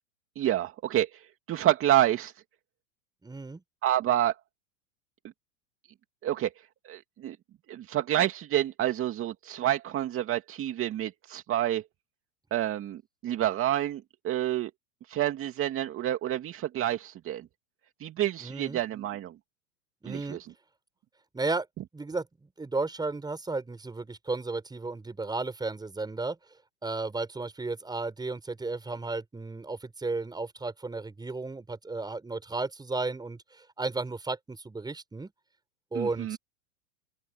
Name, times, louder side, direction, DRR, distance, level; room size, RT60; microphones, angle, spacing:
voice 1, 0.4-2.3 3.8-4.4 6.2-6.5 6.8-7.4 7.7-11.8 12.5-14.7 15.1-17.5 18.0-19.3 20.1-20.5 35.9-36.4, right 12 dB, 30° right, 2.4 m, -28 dB
voice 2, 3.2-3.6 18.4-18.8 20.0-20.4 21.3-21.7 21.9-26.4 26.8-35.3 35.9-36.4, right 3 dB, 10° right, 5.5 m, -34 dB
open air
hypercardioid pair, 110°, 40 cm